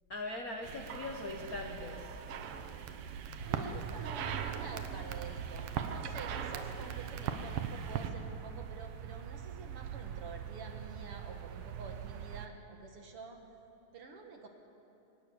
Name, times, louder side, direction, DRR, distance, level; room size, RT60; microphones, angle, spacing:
voice 1, 0.1-2.1, left 2 dB, 70° left, 2 dB, 0.8 m, -40 dB
sound 1, 0.6-8.1, right 7 dB, 90° right, 2.8 m, -40 dB
sound 2, 3.4-12.5, right 10 dB, 75° right, 1.5 m, -44 dB
voice 2, 3.5-13.4 13.9-14.5, right 4 dB, 50° right, 3 dB, 2.0 m, -48 dB
23.5 x 18.5 x 7.1 m, 2.9 s
omnidirectional pair, 3.8 m